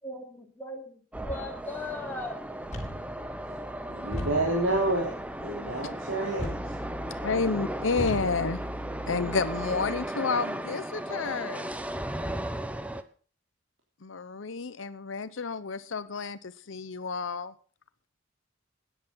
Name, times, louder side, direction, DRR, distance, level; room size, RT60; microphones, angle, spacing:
voice 1, 0.0-2.4, left 2 dB, 10° left, 3.0 m, -38 dB
sound 1, 1.1-13.0, right 1 dB, 5° right, 0.8 m, -36 dB
sound 2, 2.6-10.1, equal, 40° left, 3.9 m, -39 dB
voice 2, 3.9-5.1 5.4-7.2 7.9-8.3 9.2-9.3, right 2 dB, 85° right, 3.5 m, -30 dB
voice 3, 7.2-8.6 9.1-11.7 14.0-17.5, left 4 dB, 80° left, 0.8 m, -30 dB
13.5 x 10.0 x 6.4 m
head